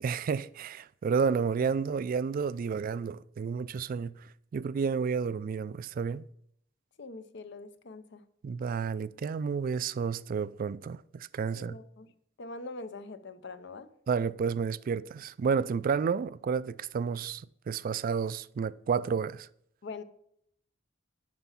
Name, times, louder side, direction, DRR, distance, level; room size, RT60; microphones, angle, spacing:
voice 1, 0.0-4.1 4.5-6.2 8.4-11.8 14.1-19.5, right 6 dB, 45° right, 0.3 m, -31 dB
voice 2, 7.0-8.2 11.5-12.1 12.4-13.9 19.8-20.0, left 3 dB, 65° left, 0.7 m, -43 dB
11.5 x 4.6 x 5.6 m
head